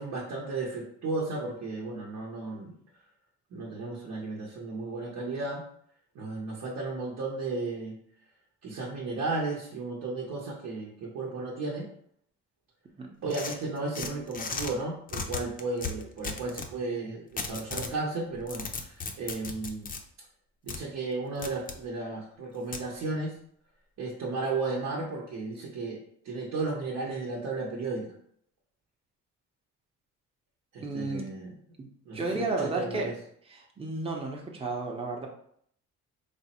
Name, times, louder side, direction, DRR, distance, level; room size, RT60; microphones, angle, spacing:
voice 1, 0.0-2.8 3.5-5.6 6.1-8.0 8.6-11.9 13.2-19.9 20.6-23.4 24.0-28.1 30.7-31.5 32.1-33.1, right 3 dB, 70° right, -4 dB, 0.9 m, -34 dB
sound 1, 13.3-14.7 15.1-16.7 17.4-18.0 18.3-20.0 20.7-20.8 21.4-21.8 22.7-22.9, left 4 dB, 30° left, 0.5 m, -36 dB
voice 2, 30.8-31.3 31.8-31.9 32.1-33.1 33.5-35.3, right 3 dB, 20° right, 0 dB, 0.7 m, -32 dB
3.4 x 2.1 x 4.2 m, 0.65 s
cardioid pair, 90°, 30 cm